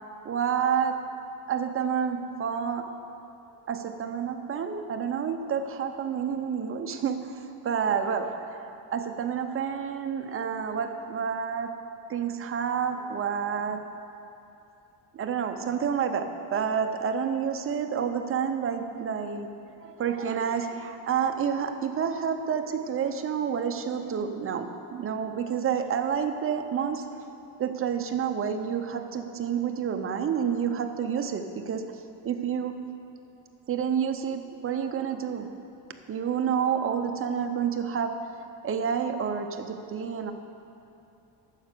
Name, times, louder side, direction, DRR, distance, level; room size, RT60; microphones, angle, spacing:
voice 1, 0.2-1.0 1.5-2.9 3.7-11.7 12.1-13.8 15.1-19.5 19.8-27.2 27.6-31.8 32.2-32.7 33.7-35.5 36.1-38.1 38.6-40.3, right 7 dB, 30° right, 6 dB, 0.6 m, -29 dB
9.3 x 6.5 x 6.7 m, 2.8 s
cardioid pair, 150°, 47 cm